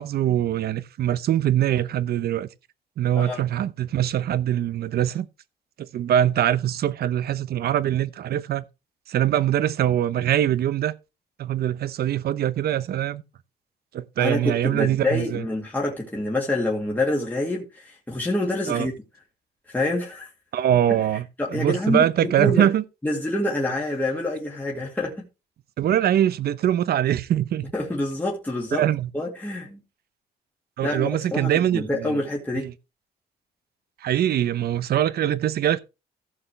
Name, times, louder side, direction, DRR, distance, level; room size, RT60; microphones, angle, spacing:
voice 1, 0.0-2.5 3.0-5.3 5.8-8.6 9.1-10.9 11.4-13.2 13.9-15.4 18.7-18.9 20.5-21.3 21.5-22.8 25.8-27.7 28.8-29.1 30.8-32.2 32.6-32.7 34.0-35.8, right 11 dB, 60° right, 0.9 m, -23 dB
voice 2, 14.2-18.9 19.7-20.3 21.4-22.7 23.0-25.3 27.7-28.9 29.1-29.8 30.8-32.7, left 1 dB, 10° left, 2.4 m, -27 dB
15.5 x 6.7 x 3.3 m
cardioid pair, 115°, 18 cm